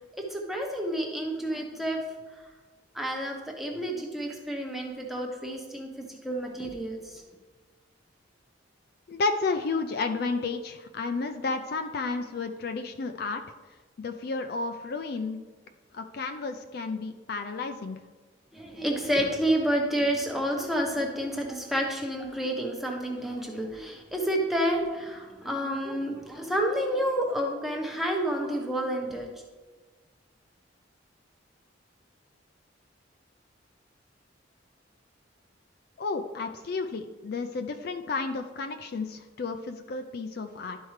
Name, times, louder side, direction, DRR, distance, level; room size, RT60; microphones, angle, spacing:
voice 1, 0.2-2.0 2.9-7.2 18.5-29.3, equal, ahead, 0 dB, 0.8 m, -29 dB
voice 2, 9.1-13.4 14.0-15.4 15.9-18.0 36.0-40.8, left 3 dB, 50° left, 6 dB, 0.4 m, -32 dB
11.5 x 4.5 x 3.2 m, 1.3 s
head